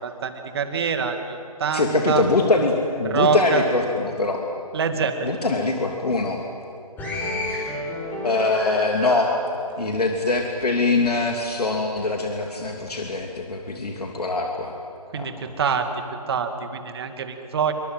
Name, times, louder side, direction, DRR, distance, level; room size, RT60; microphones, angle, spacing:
voice 1, 0.0-2.2 3.1-3.6 4.7-5.4 15.1-15.9 16.3-17.7, right 6 dB, 40° right, 6 dB, 2.4 m, -25 dB
voice 2, 1.7-4.4 5.2-6.4 8.2-9.3 9.8-14.7 15.1-15.3, left 3 dB, 80° left, 1 dB, 3.0 m, -23 dB
sound 1, 7.0-10.7 11.1-12.0 12.7-13.0, left 1 dB, 10° left, 5.2 m, -32 dB
27.5 x 25.0 x 7.9 m, 2.8 s
figure-of-eight pair, 155°, 20 cm